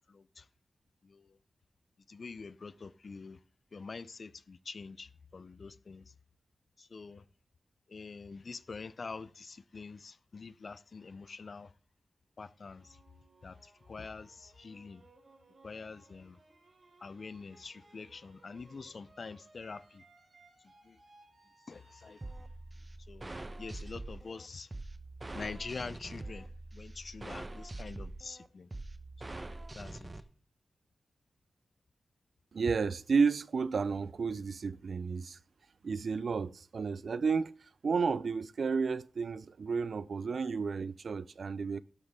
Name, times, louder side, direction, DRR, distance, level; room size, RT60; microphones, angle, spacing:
voice 1, 0.1-0.5 1.0-1.4 2.1-3.4 3.7-6.1 6.8-7.2 7.9-11.7 12.4-13.0 13.4-15.0 15.6-16.4 17.0-20.0 20.8-21.0 21.7-22.2 23.1-23.3 23.6-24.7 25.3-26.5 26.7-28.7 29.7-30.1, left 4 dB, 55° left, 0.6 m, -45 dB
sound 1, 12.7-23.7, right 2 dB, 50° right, 6.8 m, -63 dB
sound 2, 22.2-30.2, right 2 dB, 25° right, 1.1 m, -44 dB
voice 2, 32.5-35.4 35.8-37.5 37.8-41.8, right 5 dB, 70° right, 0.5 m, -32 dB
12.0 x 12.0 x 3.7 m
cardioid pair, 75°, 0 cm